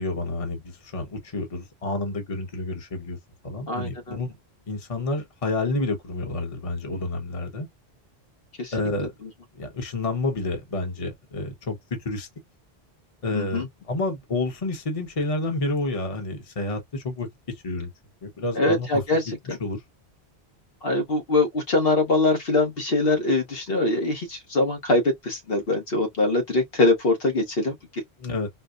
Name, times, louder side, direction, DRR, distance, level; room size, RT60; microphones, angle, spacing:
voice 1, 0.0-3.2 3.4-4.4 4.7-7.7 8.7-9.1 9.5-11.8 12.0-12.3 13.2-17.3 17.6-17.9 18.2-19.0 19.5-19.8 28.2-28.5, left 2 dB, 35° left, 1.0 m, -29 dB
voice 2, 3.7-4.2 8.6-8.7 13.3-13.7 18.5-19.2 19.5-19.6 20.8-28.0, left 2 dB, 65° left, 1.2 m, -23 dB
4.4 x 2.1 x 2.4 m
omnidirectional pair, 1.1 m